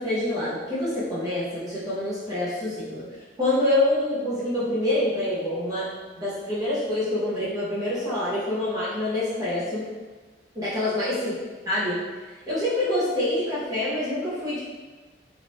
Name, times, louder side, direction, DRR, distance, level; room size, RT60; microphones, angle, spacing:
voice 1, 0.0-3.0 3.4-5.9 6.2-9.9 10.5-11.3 11.7-12.0 12.5-14.6, left 1 dB, 20° right, -10 dB, 0.8 m, -26 dB
3.1 x 2.9 x 2.7 m, 1.3 s
head